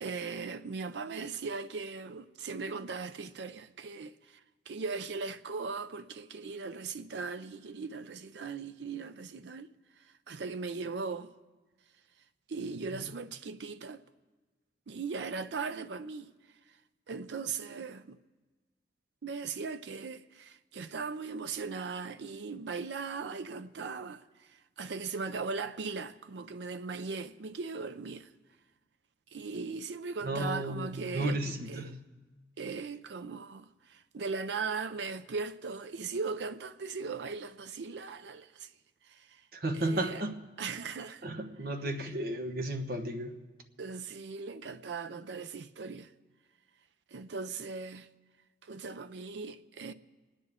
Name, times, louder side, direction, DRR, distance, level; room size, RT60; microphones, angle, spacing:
voice 1, 0.0-4.4 4.7-9.7 10.0-11.3 12.5-14.0 14.9-16.3 17.1-18.2 19.2-28.3 29.3-31.4 31.7-32.0 32.6-38.7 39.0-39.4 39.7-40.2 40.6-41.2 43.8-46.1 47.1-48.1 48.6-49.9, right 4 dB, 75° right, 0.5 m, -38 dB
voice 2, 30.2-32.0 39.5-40.4 41.2-43.4, right 1 dB, 60° right, 1.1 m, -33 dB
29.5 x 10.0 x 3.6 m
head